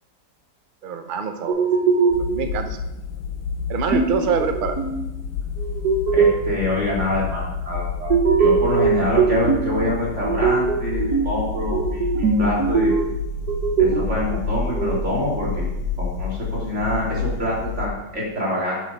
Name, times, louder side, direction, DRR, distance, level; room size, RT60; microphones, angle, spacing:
voice 1, 0.8-1.7 2.0-2.8 3.7-4.8, right 6 dB, 80° right, 7 dB, 0.4 m, -25 dB
sound 1, 1.5-2.5 3.9-5.0 5.6-6.6 8.1-9.7 10.2-11.4 11.7-13.2 13.5-15.0, right 5 dB, 60° right, 1.6 m, -21 dB
sound 2, 2.1-17.9, left 5 dB, 85° left, 1.4 m, -29 dB
voice 2, 6.1-12.9 13.8-15.7 16.0-18.8, left 1 dB, 40° right, -4 dB, 3.1 m, -26 dB
10.5 x 6.2 x 5.4 m, 0.94 s
omnidirectional pair, 2.0 m